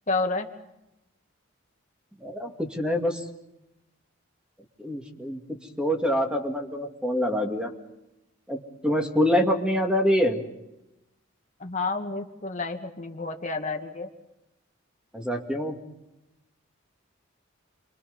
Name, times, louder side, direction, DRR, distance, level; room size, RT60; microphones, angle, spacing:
voice 1, 0.1-0.5 11.6-14.1, left 3 dB, 35° left, 4 dB, 1.9 m, -30 dB
voice 2, 2.2-3.2 4.8-5.4 5.8-7.7 8.5-10.4 15.1-15.8, equal, 5° right, 3 dB, 2.5 m, -25 dB
29.0 x 24.0 x 5.5 m, 0.93 s
head